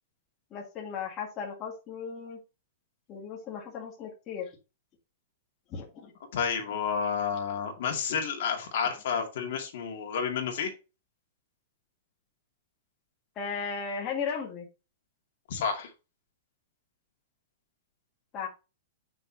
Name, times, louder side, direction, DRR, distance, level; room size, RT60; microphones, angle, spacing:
voice 1, 0.5-2.4 3.1-4.5 5.7-6.1 13.3-14.7 18.3-18.5, left 6 dB, 20° left, -2 dB, 1.8 m, -36 dB
voice 2, 6.3-10.7 15.5-15.9, left 6 dB, 55° left, 2 dB, 2.2 m, -30 dB
8.0 x 6.1 x 2.8 m, 0.28 s
supercardioid pair, 175°, 0 cm